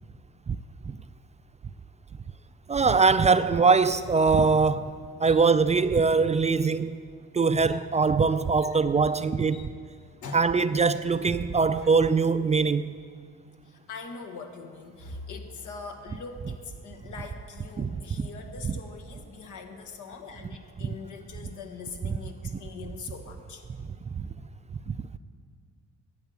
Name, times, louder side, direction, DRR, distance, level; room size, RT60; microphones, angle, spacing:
voice 1, 2.7-4.9 5.2-7.0 7.3-9.7 10.3-13.0 17.8-17.9 24.1-24.3 24.9-25.0, right 4 dB, 25° right, 0.3 m, -22 dB
voice 2, 8.6-9.2 9.5-9.7 10.2-10.6 11.8-11.9 13.6-23.6, left 4 dB, 80° left, 1.4 m, -42 dB
10.5 x 8.1 x 7.9 m
cardioid pair, 90°, 30 cm